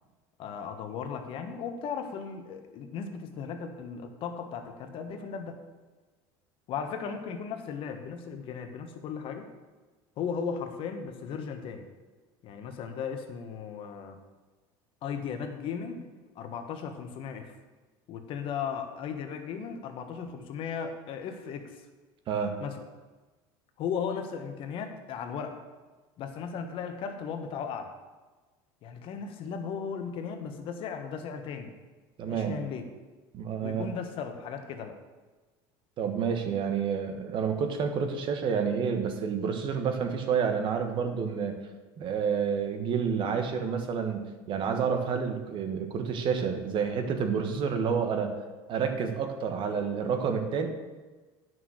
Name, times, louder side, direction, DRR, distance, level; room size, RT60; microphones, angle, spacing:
voice 1, 0.4-5.6 6.7-9.5 10.2-11.9 12.4-14.2 15.0-17.5 18.1-21.9 22.6-22.8 23.8-25.6 26.2-27.9 28.8-31.7 32.2-32.8 33.6-35.0, left 6 dB, 55° left, 6 dB, 1.3 m, -36 dB
voice 2, 32.2-32.5 33.3-33.9 36.0-41.6 42.0-48.3 48.7-50.7, right 6 dB, 45° right, 6 dB, 1.4 m, -29 dB
9.4 x 6.3 x 6.5 m, 1.3 s
supercardioid pair, 115°, 11 cm